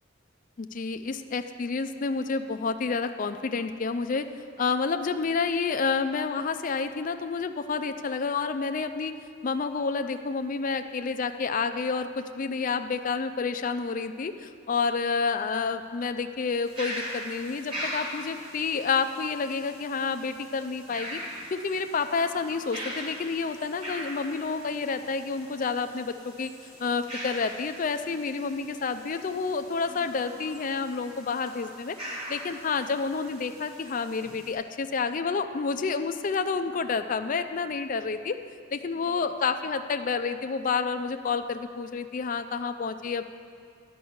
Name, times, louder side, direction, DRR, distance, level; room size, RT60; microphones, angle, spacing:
voice 1, 0.6-4.3 4.6-9.1 9.4-21.2 21.5-26.5 26.8-32.0 32.3-38.4 38.7-43.2, left 5 dB, 45° left, 8 dB, 0.4 m, -29 dB
sound 1, 16.7-34.5, equal, 30° right, 2.2 m, -41 dB
11.0 x 5.4 x 7.9 m, 2.2 s
head